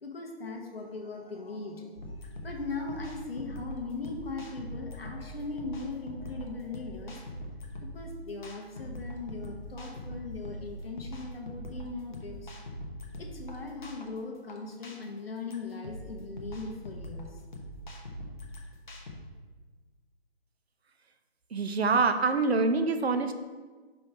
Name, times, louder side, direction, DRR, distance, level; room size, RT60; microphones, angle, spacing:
voice 1, 0.0-7.2 7.8-12.5 13.2-17.4, left 3 dB, 60° left, 1 dB, 1.2 m, -39 dB
sound 1, 2.0-19.2, equal, 45° left, 0.9 m, -42 dB
voice 2, 21.5-23.3, right 4 dB, 70° right, 8 dB, 0.7 m, -25 dB
5.3 x 3.5 x 5.5 m, 1.4 s
figure-of-eight pair, 160°, 33 cm